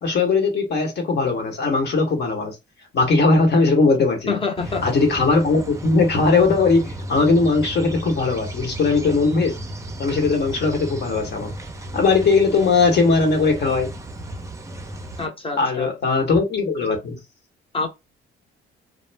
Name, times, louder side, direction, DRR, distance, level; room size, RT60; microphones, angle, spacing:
voice 1, 0.0-2.6 2.9-4.4 4.8-9.6 10.0-11.5 11.9-13.9 15.6-17.2, left 3 dB, 60° left, 1.1 m, -19 dB
voice 2, 4.3-4.8 15.2-15.9 17.7-17.9, left 4 dB, 30° left, 0.8 m, -26 dB
sound 1, 4.6-15.3, right 1 dB, 15° right, 0.5 m, -34 dB
2.4 x 2.0 x 3.2 m
cardioid pair, 90°, 20 cm